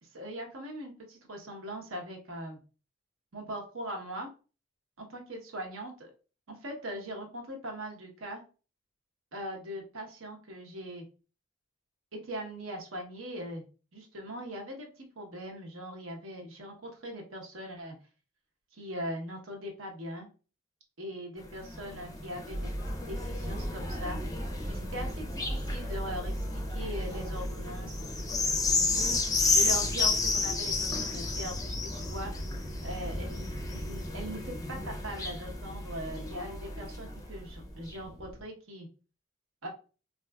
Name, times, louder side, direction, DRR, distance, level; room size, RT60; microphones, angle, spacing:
voice 1, 0.0-2.6 3.3-4.3 5.0-6.1 6.5-8.4 9.3-11.0 12.1-13.6 13.9-17.9 18.7-20.3 21.0-24.2 24.7-28.0 28.9-32.3 32.8-38.9 39.6-39.7, equal, 80° right, 2 dB, 0.9 m, -40 dB
sound 1, 21.4-37.2 37.9-38.0, left 3 dB, 20° left, 0.4 m, -33 dB
sound 2, 22.5-38.4, equal, 25° right, 1.0 m, -38 dB
4.4 x 2.5 x 2.2 m, 0.36 s
head